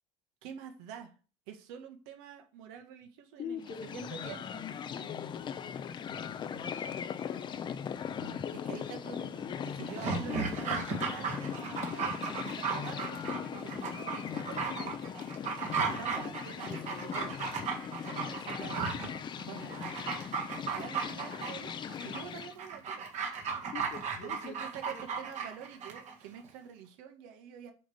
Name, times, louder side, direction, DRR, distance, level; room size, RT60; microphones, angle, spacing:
voice 1, 0.4-1.1 1.5-4.7 8.7-15.2 15.8-17.5 18.0-19.1 19.4-20.0 20.5-21.7 22.0-23.0 24.2-27.7, right 8 dB, 75° right, 5 dB, 1.6 m, -47 dB
voice 2, 3.4-4.3 4.9-7.7 8.1-9.6 23.7-25.0, left 7 dB, 45° left, 2 dB, 1.6 m, -46 dB
sound 1, 3.6-22.5, left 8 dB, 30° left, 0.6 m, -39 dB
Dog, 9.9-26.1 26.4-26.5, right 5 dB, 50° right, 1.9 m, -36 dB
7.7 x 3.5 x 6.4 m, 0.36 s
supercardioid pair, 115°, 15 cm